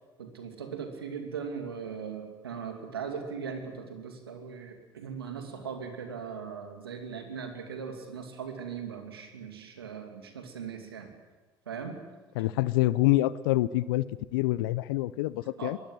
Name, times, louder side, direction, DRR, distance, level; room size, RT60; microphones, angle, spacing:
voice 1, 0.2-11.1 11.7-12.0 15.6-15.8, right 6 dB, 85° right, 5 dB, 2.5 m, -39 dB
voice 2, 12.4-14.0 14.3-15.8, left 17 dB, 75° left, 18 dB, 0.6 m, -26 dB
22.0 x 16.5 x 7.7 m, 1.2 s
hypercardioid pair, 65°, 12 cm